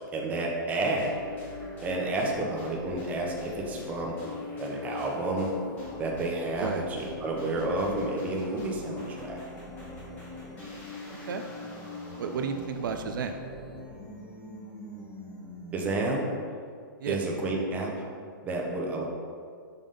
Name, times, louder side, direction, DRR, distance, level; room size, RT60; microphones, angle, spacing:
voice 1, 0.1-1.2 1.8-4.2 4.6-5.5 6.0-9.4 15.7-16.3 17.1-17.9 18.4-19.0, right 2 dB, 15° right, -1 dB, 0.7 m, -30 dB
sound 1, 1.0-16.1, left 3 dB, 15° left, 1.3 m, -41 dB
voice 2, 11.1-11.4 12.2-13.4 17.0-17.2, right 6 dB, 70° right, 6 dB, 0.5 m, -32 dB
5.5 x 3.5 x 5.3 m, 2.1 s
hypercardioid pair, 160°, 11 cm